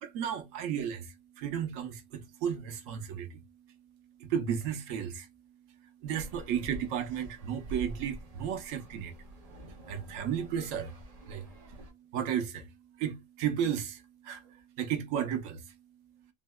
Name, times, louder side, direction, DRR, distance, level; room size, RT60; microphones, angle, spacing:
voice 1, 0.0-3.4 4.2-5.3 6.0-9.1 9.9-11.0 11.3-11.4 12.1-12.7 13.0-15.7, right 8 dB, 85° right, 1.0 m, -34 dB
sound 1, 6.1-11.9, right 1 dB, 45° right, 0.5 m, -46 dB
3.7 x 2.1 x 2.2 m
omnidirectional pair, 1.3 m